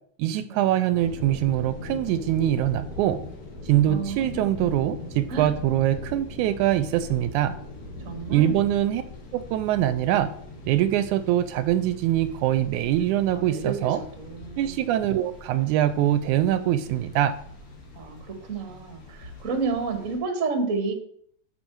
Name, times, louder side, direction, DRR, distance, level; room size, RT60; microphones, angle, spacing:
voice 1, 0.2-3.2 3.7-7.5 8.3-9.0 9.3-10.3 10.7-14.0 14.6-17.3, right 12 dB, 80° right, 12 dB, 1.9 m, -23 dB
sound 1, 0.9-20.2, left 2 dB, 55° left, 3.8 m, -41 dB
voice 2, 3.9-4.5 5.3-5.5 8.0-8.6 13.3-14.8 17.9-20.9, right 4 dB, 35° right, 5 dB, 1.3 m, -31 dB
9.7 x 6.9 x 4.6 m, 0.62 s
omnidirectional pair, 3.5 m